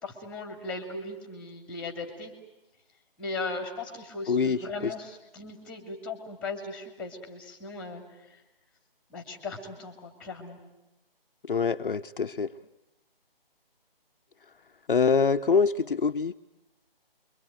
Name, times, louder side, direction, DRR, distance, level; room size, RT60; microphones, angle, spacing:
voice 1, 0.0-2.3 3.2-8.4 9.1-10.6, left 3 dB, 5° left, 5 dB, 2.7 m, -38 dB
voice 2, 4.3-4.9 11.5-12.5 14.9-16.3, left 5 dB, 60° left, 6 dB, 0.9 m, -25 dB
27.0 x 23.5 x 9.3 m, 0.96 s
figure-of-eight pair, 160°, 30 cm